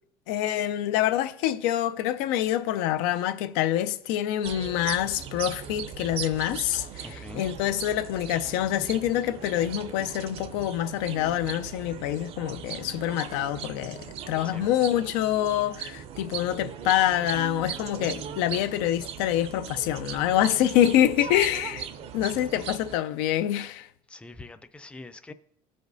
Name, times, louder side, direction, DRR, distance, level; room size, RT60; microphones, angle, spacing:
voice 1, 0.3-21.9 22.1-23.9, left 12 dB, 90° left, 0.5 m, -26 dB
sound 1, 4.4-23.0, right 8 dB, 55° right, 0.6 m, -39 dB
voice 2, 7.0-7.4 14.4-14.7 21.2-21.3 22.2-22.4 24.1-25.3, left 2 dB, 10° left, 0.5 m, -44 dB
14.5 x 5.1 x 2.6 m
cardioid pair, 110°, 12 cm